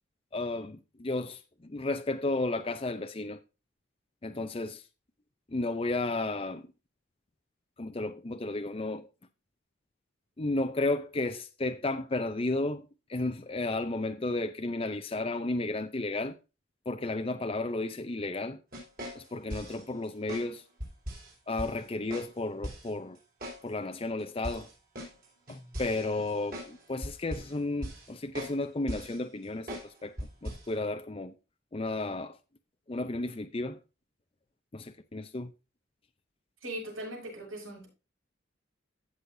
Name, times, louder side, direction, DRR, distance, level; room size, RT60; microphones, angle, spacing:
voice 1, 0.3-3.4 4.2-4.8 5.5-6.7 7.8-9.1 10.4-12.8 13.1-16.4 16.9-18.6 19.1-20.6 21.5-23.2 23.6-24.7 25.5-30.2 30.4-31.3 31.7-32.4 32.9-33.8 34.7-35.5, left 2 dB, 30° left, 0.6 m, -33 dB
sound 1, 18.7-19.8 20.3-20.5 20.8-21.3 21.6-21.7 22.1-22.3 22.6-22.9 23.4-23.6 23.9-24.0 24.4-26.7 27.0-27.5 27.8-28.1 28.3-28.6 28.9-29.2 29.7-29.9 30.2-30.7, equal, 45° right, 5.1 m, -39 dB
voice 2, 36.6-37.9, right 1 dB, 85° right, 6.6 m, -39 dB
16.0 x 6.3 x 2.7 m
head